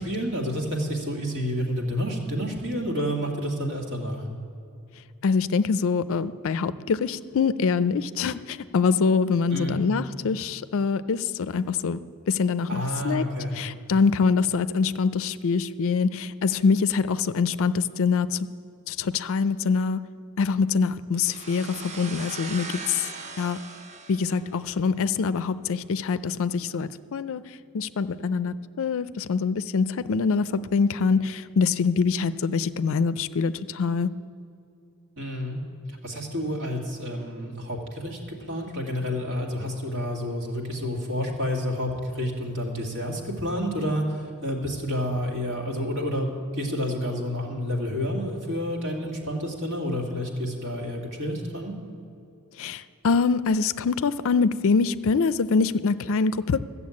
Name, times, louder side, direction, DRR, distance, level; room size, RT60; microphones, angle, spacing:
voice 1, 0.0-4.2 9.5-9.8 12.7-13.6 35.2-35.6 36.0-51.8, equal, 60° right, -1 dB, 2.2 m, -29 dB
voice 2, 5.2-12.0 12.3-13.2 13.6-18.5 18.9-20.0 20.4-23.1 23.4-23.6 24.1-27.4 27.7-34.1 52.6-56.6, left 5 dB, 65° left, 14 dB, 0.4 m, -24 dB
sound 1, 21.2-24.9, right 4 dB, 30° right, 0.6 m, -39 dB
14.0 x 6.9 x 8.5 m, 2.6 s
head